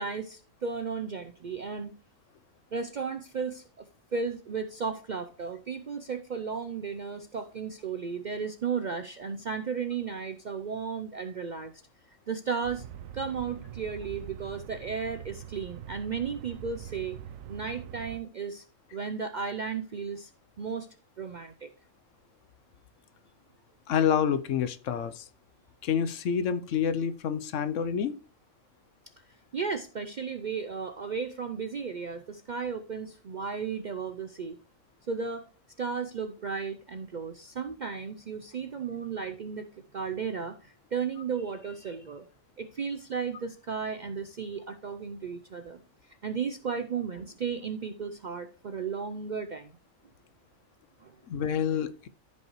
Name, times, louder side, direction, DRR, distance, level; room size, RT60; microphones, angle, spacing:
voice 1, 0.0-1.9 2.7-3.9 4.1-11.7 12.3-12.8 13.1-17.2 17.5-18.6 18.9-20.3 20.6-20.9 21.2-21.7 29.3-34.6 35.1-35.5 35.8-39.7 39.9-42.3 42.6-45.8 46.1-49.8 51.0-51.2, right 5 dB, 55° right, 0.5 m, -34 dB
sound 1, 12.6-18.2, right 10 dB, 80° right, 1.0 m, -43 dB
voice 2, 23.9-25.2 25.8-28.2 51.3-52.1, left 8 dB, 70° left, 1.0 m, -28 dB
14.0 x 5.4 x 3.1 m
omnidirectional pair, 1.4 m